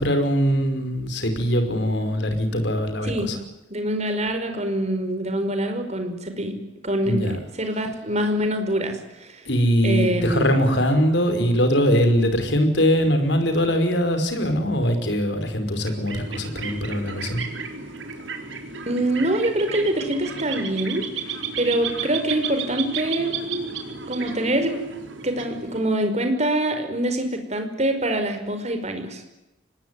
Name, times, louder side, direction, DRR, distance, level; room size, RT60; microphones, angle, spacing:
voice 1, 0.0-3.4 7.0-7.4 9.5-17.5, equal, 65° left, 8 dB, 5.3 m, -22 dB
voice 2, 3.7-6.6 6.8-7.3 7.6-9.4 9.8-10.5 18.9-23.3 24.1-24.7 25.2-29.2, right 1 dB, 35° right, 6 dB, 5.2 m, -25 dB
sound 1, 15.8-26.2, right 5 dB, 80° right, 4.6 m, -33 dB
25.5 x 20.5 x 9.8 m, 0.95 s
head